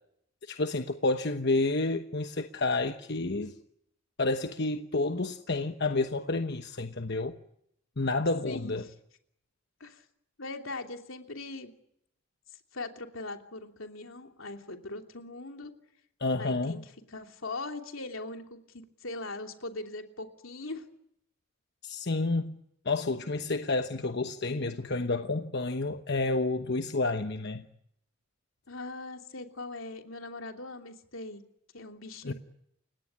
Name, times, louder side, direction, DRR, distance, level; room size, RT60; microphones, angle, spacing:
voice 1, 0.4-3.5 4.2-7.3 8.0-8.8 16.2-16.8 21.8-27.6 32.2-32.3, left 2 dB, 55° left, 1.1 m, -30 dB
voice 2, 8.4-8.9 9.8-10.0 10.4-11.7 12.7-15.7 16.4-16.8 17.1-20.8 28.7-31.4 31.7-32.3, left 2 dB, 80° left, 3.0 m, -40 dB
30.0 x 17.5 x 9.9 m
head